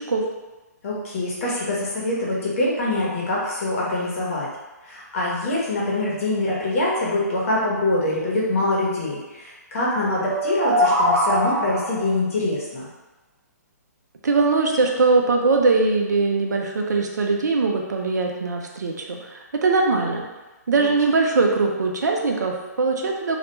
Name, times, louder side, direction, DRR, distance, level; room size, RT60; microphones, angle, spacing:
voice 1, 0.8-4.5 4.8-12.9 20.8-20.9, left 2 dB, 50° left, -5 dB, 1.0 m, -24 dB
sound 1, 10.2-12.1, equal, 40° right, 0.7 m, -21 dB
voice 2, 14.2-20.2 20.7-23.4, right 3 dB, 75° right, 1 dB, 0.5 m, -21 dB
2.4 x 2.1 x 2.9 m, 1.1 s
hypercardioid pair, 140°, 9 cm